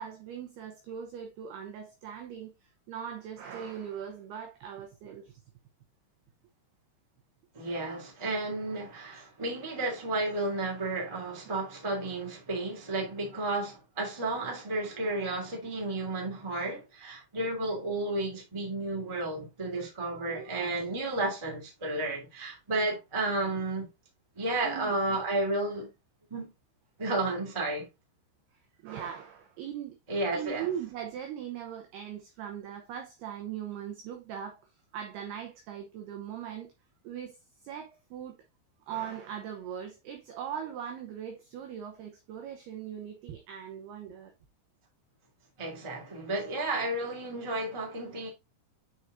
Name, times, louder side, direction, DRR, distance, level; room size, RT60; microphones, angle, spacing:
voice 1, 0.0-5.3 24.6-24.9 28.8-30.0 30.3-34.6 34.9-36.7 37.0-37.4 37.6-38.3 38.9-44.3, right 9 dB, 85° right, 2.2 m, -40 dB
voice 2, 7.5-23.9 24.3-25.9 26.3-26.5 27.0-27.9 30.1-30.7 45.6-48.3, right 2 dB, 15° right, 1.2 m, -32 dB
9.5 x 4.8 x 2.6 m
omnidirectional pair, 6.0 m